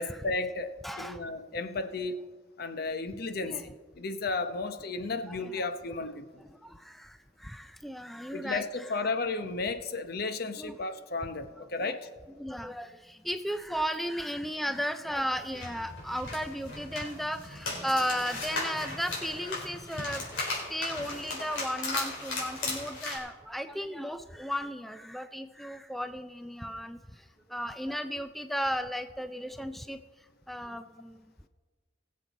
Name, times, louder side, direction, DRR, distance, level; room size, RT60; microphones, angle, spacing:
voice 1, 0.0-2.2 2.6-6.3 8.3-12.1, left 3 dB, 55° left, 9 dB, 0.8 m, -33 dB
voice 2, 0.8-1.2 3.4-3.6 5.3-5.7 6.6-8.6 10.6-10.8 11.8-11.9 12.4-20.2 20.7-27.0 27.5-30.0 30.5-31.3, equal, ahead, 8 dB, 0.3 m, -35 dB
sound 1, 15.3-23.2, left 2 dB, 85° left, 4.0 m, -37 dB
21.0 x 7.6 x 4.1 m, 1.4 s
head